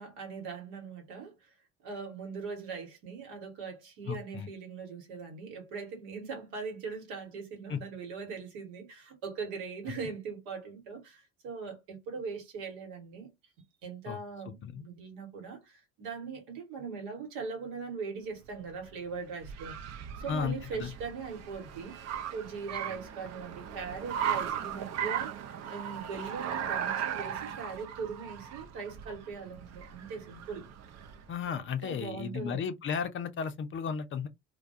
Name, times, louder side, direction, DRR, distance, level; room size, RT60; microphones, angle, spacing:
voice 1, 0.0-1.3 1.8-13.3 13.8-19.8 20.2-25.3 25.7-30.6 31.5-32.6, right 5 dB, 75° right, 1.2 m, -40 dB
voice 2, 4.1-4.5 7.7-7.8 9.9-10.0 14.1-14.2 14.5-14.8 20.3-20.9 31.3-34.3, left 6 dB, 35° left, 0.5 m, -34 dB
Car, 18.4-31.3, right 9 dB, 45° right, 0.6 m, -37 dB
2.2 x 2.2 x 2.6 m
hypercardioid pair, 70°, 36 cm